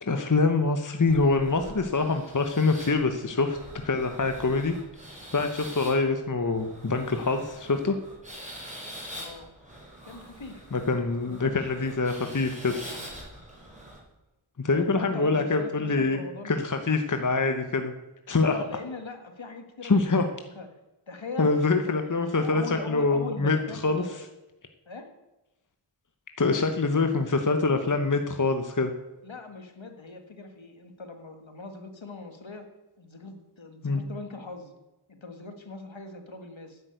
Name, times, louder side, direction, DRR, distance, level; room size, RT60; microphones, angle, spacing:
voice 1, 0.0-4.7 5.3-8.0 10.7-12.7 14.6-16.2 16.4-17.9 18.3-18.6 19.8-20.2 21.4-24.0 26.4-28.9 33.8-34.0, left 3 dB, 40° left, 6 dB, 1.0 m, -25 dB
sound 1, 1.1-14.0, equal, 15° right, 4.7 m, -45 dB
voice 2, 9.1-9.5 10.1-10.7 11.2-12.0 12.8-13.0 14.7-16.5 18.4-20.2 20.6-20.7 21.1-24.2 24.9-25.1 29.2-32.7 33.0-34.7 35.1-36.8, left 3 dB, 65° left, 6 dB, 1.8 m, -41 dB
10.0 x 8.8 x 8.1 m, 1.0 s
wide cardioid pair, 55°, 50 cm